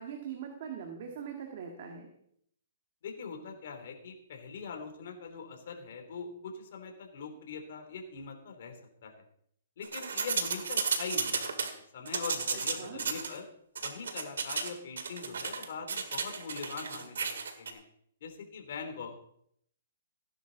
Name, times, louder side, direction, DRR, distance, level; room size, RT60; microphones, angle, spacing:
voice 1, 0.0-2.1 12.8-13.0, right 7 dB, 45° right, 3 dB, 1.9 m, -41 dB
voice 2, 3.0-9.2 9.8-13.4 13.8-17.3 17.6-17.8 18.2-19.1, left 5 dB, 55° left, 3 dB, 3.1 m, -42 dB
sound 1, 9.8-11.7 12.1-13.3 13.7-14.7 15.0-17.7, right 5 dB, 85° right, 1.9 m, -33 dB
16.5 x 10.5 x 4.0 m, 0.69 s
hypercardioid pair, 155°, 0 cm